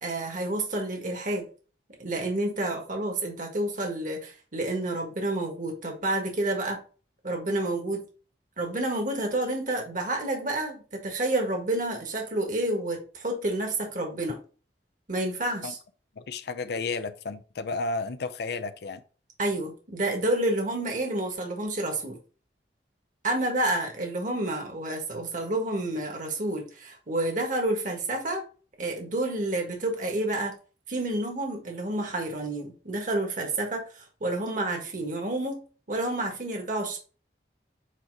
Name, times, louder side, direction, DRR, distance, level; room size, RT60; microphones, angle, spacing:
voice 1, 0.0-1.5 2.0-6.8 7.2-8.1 8.6-14.4 15.1-15.8 19.4-22.2 23.2-28.4 28.8-30.6 30.9-37.0, right 1 dB, 50° right, 1.6 m, -29 dB
voice 2, 16.2-19.0, left 3 dB, 65° left, 0.5 m, -32 dB
8.2 x 2.9 x 4.1 m
head